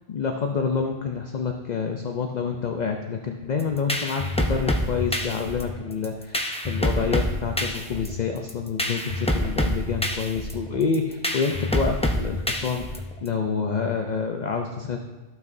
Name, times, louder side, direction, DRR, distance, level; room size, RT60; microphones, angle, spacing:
voice 1, 0.1-12.8 13.2-15.0, left 5 dB, 45° left, 3 dB, 0.6 m, -27 dB
sound 1, 3.6-13.3, equal, 10° left, 0.4 m, -27 dB
14.0 x 5.9 x 2.7 m, 1.2 s
omnidirectional pair, 1.2 m